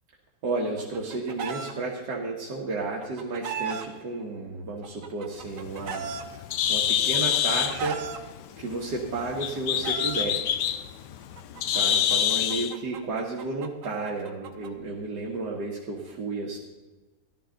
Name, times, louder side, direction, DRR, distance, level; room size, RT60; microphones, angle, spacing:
voice 1, 0.4-6.1 6.7-8.1 8.6-10.4 11.7-16.6, right 3 dB, 85° right, -3 dB, 2.1 m, -32 dB
Chicken rooster, 0.6-1.7 2.8-3.9 4.8-6.2 7.1-8.2 9.2-10.2 11.4-14.7, right 6 dB, 55° right, 1.2 m, -36 dB
Bird, 5.4-12.7, left 10 dB, 90° left, 1.3 m, -27 dB
15.0 x 11.5 x 3.9 m, 1.2 s
omnidirectional pair, 1.8 m